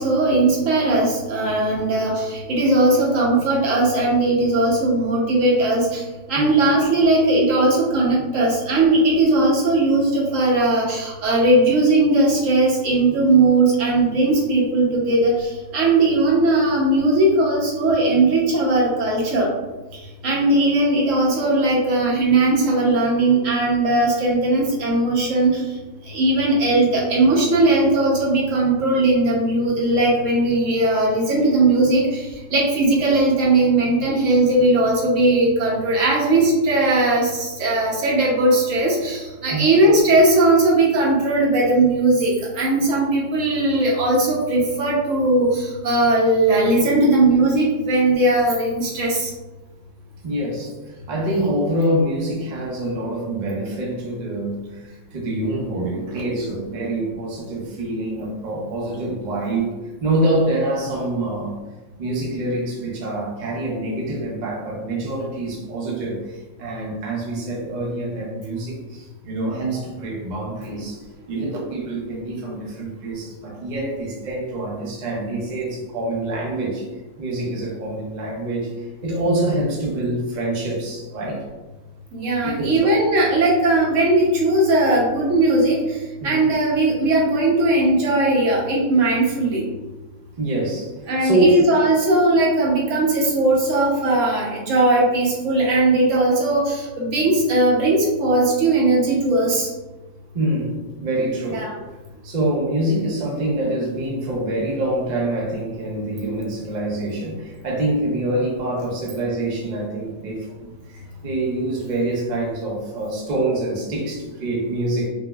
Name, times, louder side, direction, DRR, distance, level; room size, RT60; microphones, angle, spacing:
voice 1, 0.0-19.5 19.9-25.7 26.0-49.3 82.1-89.7 91.1-99.7 101.5-101.8, right 2 dB, 75° right, -4 dB, 1.2 m, -18 dB
voice 2, 50.2-50.7 51.1-59.7 60.0-61.6 62.0-71.0 71.3-76.8 77.2-78.7 79.0-81.4 82.4-82.8 86.2-86.4 90.4-90.9 91.2-91.7 100.3-101.7 102.2-115.1, right 1 dB, 40° right, -3 dB, 0.7 m, -25 dB
5.1 x 2.0 x 2.3 m, 1.2 s
omnidirectional pair, 1.4 m